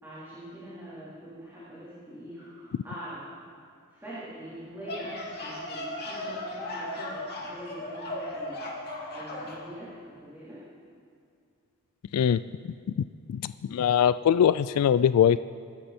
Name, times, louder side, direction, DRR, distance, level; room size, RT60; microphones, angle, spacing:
voice 1, 0.0-3.2 3.9-8.6 9.1-10.7, right 1 dB, 10° right, -11 dB, 3.7 m, -43 dB
sound 1, 4.6-9.6, left 1 dB, 50° left, 2.7 m, -36 dB
voice 2, 13.3-15.4, left 9 dB, 90° left, 14 dB, 0.3 m, -22 dB
24.0 x 12.0 x 4.3 m, 2.3 s
head